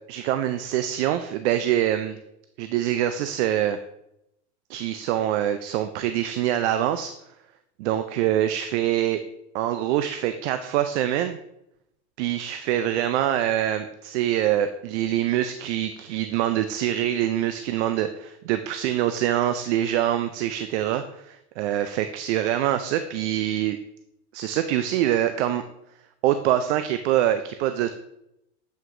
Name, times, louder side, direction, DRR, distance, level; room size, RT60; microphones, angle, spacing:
voice 1, 0.0-2.2 2.6-3.8 4.7-7.1 7.8-9.2 9.5-11.4 12.2-23.8 24.3-25.6 26.2-27.9, right 11 dB, 70° right, 9 dB, 0.5 m, -24 dB
7.9 x 4.6 x 2.6 m, 0.83 s
supercardioid pair, 115°, 35 cm